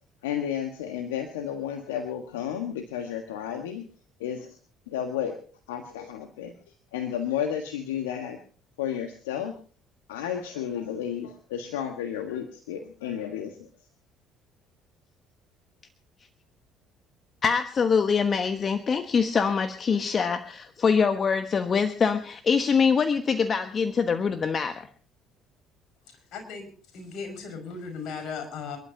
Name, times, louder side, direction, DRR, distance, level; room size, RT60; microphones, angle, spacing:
voice 1, 0.2-3.9 4.2-4.6 4.9-5.4 5.7-6.5 6.9-8.4 8.8-9.6 10.1-13.7, left 9 dB, 80° left, 5 dB, 1.4 m, -32 dB
voice 2, 17.4-24.9, left 5 dB, 40° left, 9 dB, 1.2 m, -24 dB
voice 3, 26.3-28.8, left 5 dB, 65° left, 6 dB, 5.8 m, -37 dB
28.0 x 12.0 x 2.8 m, 0.39 s
hypercardioid pair, 55°, 0 cm